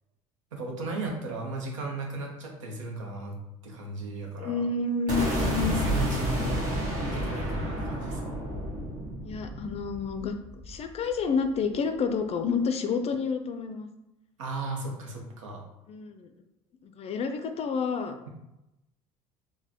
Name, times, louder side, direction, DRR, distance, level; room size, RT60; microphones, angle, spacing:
voice 1, 0.5-4.6 5.6-6.6 7.0-8.3 14.4-15.6, right 2 dB, 90° right, 1 dB, 0.7 m, -36 dB
voice 2, 4.4-5.7 7.2-7.3 9.2-10.4 10.7-13.9 15.9-16.3 16.8-18.3, left 5 dB, 40° left, 7 dB, 0.4 m, -29 dB
sound 1, 5.1-11.1, equal, 55° right, 1.4 m, -30 dB
3.8 x 2.1 x 2.8 m, 0.92 s
hypercardioid pair, 70°, 16 cm